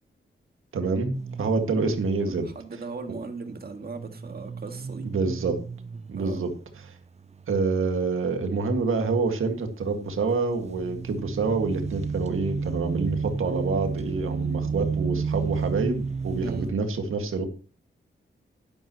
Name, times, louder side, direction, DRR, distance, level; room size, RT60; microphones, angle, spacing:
voice 1, 0.7-2.5 3.1-3.2 5.0-5.6 6.1-6.5 7.5-17.4, right 4 dB, 85° right, 5 dB, 1.9 m, -27 dB
sound 1, 1.1-2.1 3.6-8.1 8.5-9.0 10.4-16.7, right 5 dB, 35° right, 0.5 m, -32 dB
voice 2, 2.1-5.1 6.2-6.4 16.4-16.7, right 4 dB, 50° right, 6 dB, 1.8 m, -38 dB
11.5 x 11.0 x 3.0 m, 0.35 s
wide cardioid pair, 95°, 21 cm